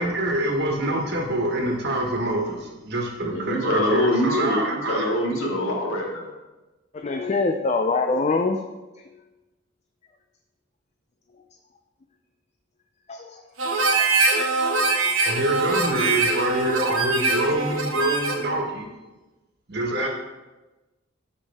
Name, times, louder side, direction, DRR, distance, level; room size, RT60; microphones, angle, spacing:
voice 1, 0.0-5.1 15.2-18.9 19.7-20.1, right 1 dB, 55° right, 1 dB, 1.5 m, -26 dB
voice 2, 3.3-6.3, left 1 dB, 85° left, -2 dB, 2.1 m, -24 dB
voice 3, 7.0-8.6 13.1-13.4 14.0-14.8 19.9-20.1, left 3 dB, 35° left, 4 dB, 0.5 m, -25 dB
Harmonica, 13.6-18.5, right 3 dB, 85° right, 1.3 m, -23 dB
12.0 x 5.3 x 3.5 m, 1.1 s
head